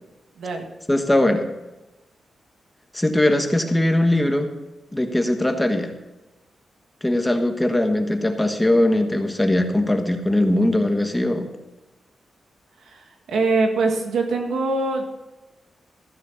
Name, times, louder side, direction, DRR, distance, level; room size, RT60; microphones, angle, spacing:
voice 1, 0.9-1.4 2.9-4.5 4.9-5.9 7.0-11.5, left 1 dB, 10° left, 5 dB, 1.3 m, -20 dB
voice 2, 12.9-15.1, right 3 dB, 85° right, 3 dB, 2.0 m, -23 dB
14.5 x 6.3 x 7.1 m, 1.0 s
cardioid pair, 95°, 0 cm